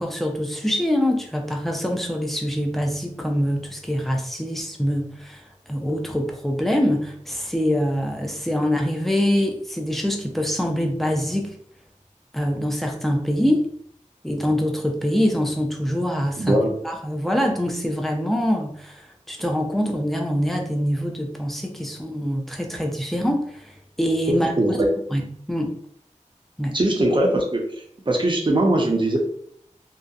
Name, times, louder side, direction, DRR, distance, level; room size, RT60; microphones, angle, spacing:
voice 1, 0.0-5.4 5.7-11.6 12.3-13.7 14.2-16.6 16.8-24.8 25.1-25.7 26.6-26.8, equal, ahead, 2 dB, 0.5 m, -24 dB
voice 2, 16.4-16.7 24.3-24.9 26.7-27.7 28.1-29.2, right 1 dB, 40° right, 1 dB, 0.6 m, -20 dB
2.7 x 2.1 x 2.3 m, 0.64 s
wide cardioid pair, 50°, 13 cm